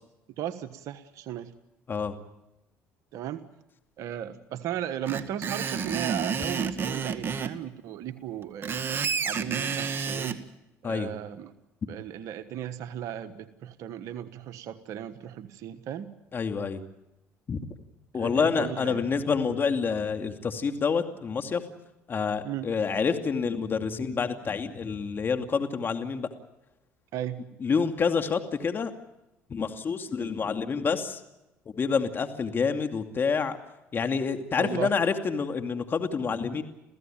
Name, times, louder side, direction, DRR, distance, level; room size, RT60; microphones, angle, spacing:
voice 1, 0.4-1.5 3.1-3.5 4.0-8.8 9.2-10.4 10.8-11.5 11.8-16.1 18.2-19.0 22.4-22.7 27.1-27.4 34.6-34.9, right 11 dB, 70° right, 10 dB, 1.3 m, -36 dB
Screech, 5.1-7.5 8.4-10.4, right 6 dB, 40° right, 2.0 m, -30 dB
voice 2, 16.3-16.8 17.5-17.6 18.1-21.6 22.1-26.3 27.6-28.9 29.5-31.2 31.7-33.6 33.9-36.6, left 5 dB, 40° left, 7 dB, 2.5 m, -28 dB
29.0 x 16.0 x 9.0 m, 0.93 s
supercardioid pair, 80°, 6 cm